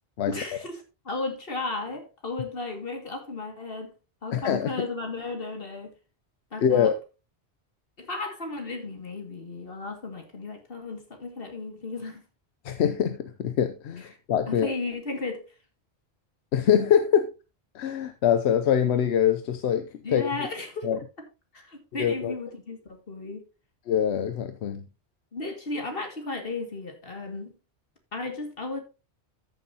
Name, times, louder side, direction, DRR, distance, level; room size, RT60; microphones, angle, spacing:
voice 1, 0.3-3.9 4.2-5.9 6.5-6.9 8.0-12.2 14.0-14.1 14.5-15.5 20.0-20.9 21.5-23.4 25.3-27.5 28.1-28.8, left 3 dB, 60° left, 2.3 m, -34 dB
voice 2, 4.3-4.7 6.6-6.9 12.6-14.7 16.5-17.3 17.7-20.3 20.8-21.0 22.0-22.3 23.9-24.8, left 8 dB, 80° left, 1.0 m, -24 dB
14.0 x 7.0 x 2.8 m
omnidirectional pair, 1.1 m